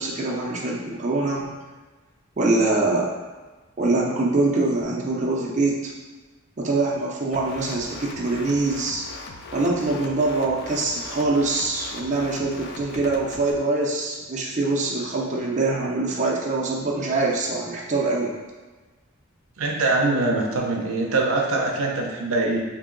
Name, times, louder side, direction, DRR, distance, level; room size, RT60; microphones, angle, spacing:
voice 1, 0.0-1.5 2.4-3.1 3.8-5.8 6.6-9.0 9.5-18.3, right 2 dB, 35° right, -3 dB, 0.5 m, -24 dB
sound 1, 7.3-13.5, left 3 dB, 50° left, 0.3 m, -40 dB
voice 2, 19.6-22.6, right 2 dB, 85° right, 0 dB, 0.5 m, -23 dB
2.9 x 2.7 x 3.8 m, 1.3 s
head